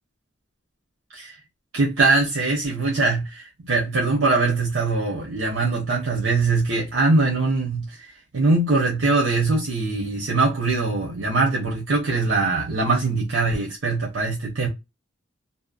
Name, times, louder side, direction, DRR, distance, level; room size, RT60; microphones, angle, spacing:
voice 1, 1.7-14.7, right 3 dB, 85° right, 0.9 m, -22 dB
2.7 x 2.1 x 2.3 m
head